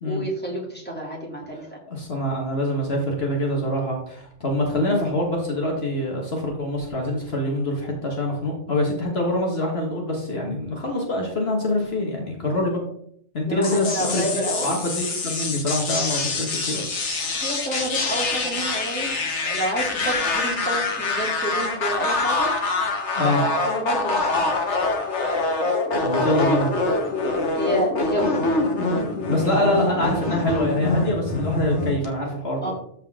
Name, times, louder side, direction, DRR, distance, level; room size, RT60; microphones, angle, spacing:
voice 1, 0.0-1.8 4.6-4.9 10.7-10.8 13.4-14.7 17.3-19.1 19.4-22.5 23.2-24.6 27.5-28.4 29.6-30.0 32.6-32.7, right 1 dB, 10° left, -4 dB, 3.1 m, -29 dB
voice 2, 1.9-12.8 13.3-13.9 14.1-17.0 23.2-23.4 26.0-26.7 29.3-32.7, left 1 dB, 60° left, 0 dB, 1.9 m, -25 dB
sound 1, 13.6-32.1, left 3 dB, 80° left, 1.6 m, -25 dB
13.0 x 4.5 x 3.7 m, 0.66 s
omnidirectional pair, 1.2 m